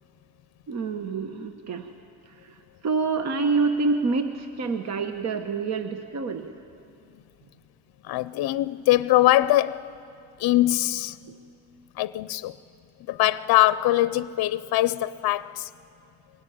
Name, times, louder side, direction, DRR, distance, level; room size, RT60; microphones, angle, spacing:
voice 1, 0.7-1.9 2.4-2.6 2.8-6.5, right 4 dB, 45° right, 1.1 m, -27 dB
voice 2, 8.0-9.9 10.4-11.2 12.0-12.5 13.1-15.7, left 15 dB, 70° left, 0.6 m, -22 dB
23.0 x 18.0 x 10.0 m
cardioid pair, 145°, 38 cm